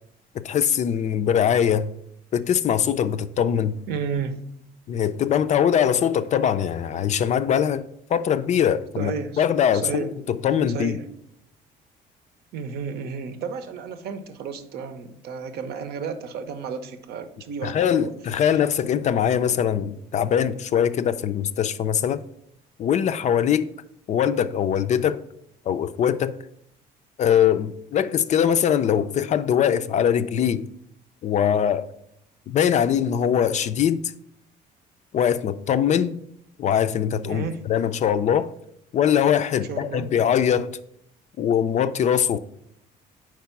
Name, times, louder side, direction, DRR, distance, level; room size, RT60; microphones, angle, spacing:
voice 1, 0.3-1.9 2.3-3.8 4.9-11.0 17.6-22.2 22.8-23.7 24.1-25.2 25.7-26.4 27.2-30.7 31.2-31.9 32.5-34.1 35.1-36.2 36.6-38.5 38.9-40.7 41.4-42.4, left 8 dB, 45° left, 0.4 m, -22 dB
voice 2, 3.9-4.4 9.0-9.4 9.7-10.1 10.7-11.1 12.5-18.1 18.4-18.5 18.8-18.9 37.3-37.6 39.7-40.1, right 6 dB, 70° right, 0.7 m, -32 dB
4.6 x 4.5 x 5.8 m
cardioid pair, 110°, 17 cm